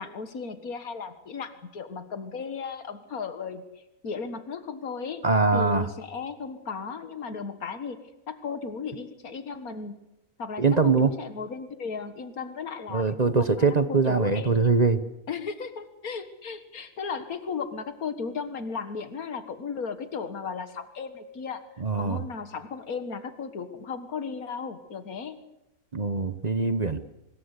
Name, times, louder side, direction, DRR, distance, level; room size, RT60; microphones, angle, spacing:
voice 1, 0.0-5.2 5.5-8.0 8.3-9.9 10.4-14.7 15.3-21.6 22.0-25.4, left 5 dB, 90° left, 10 dB, 2.1 m, -35 dB
voice 2, 5.2-5.9 10.6-11.1 12.9-15.0 21.8-22.2 25.9-27.0, right 4 dB, 35° right, 12 dB, 1.0 m, -22 dB
24.5 x 21.0 x 8.2 m, 0.91 s
omnidirectional pair, 1.5 m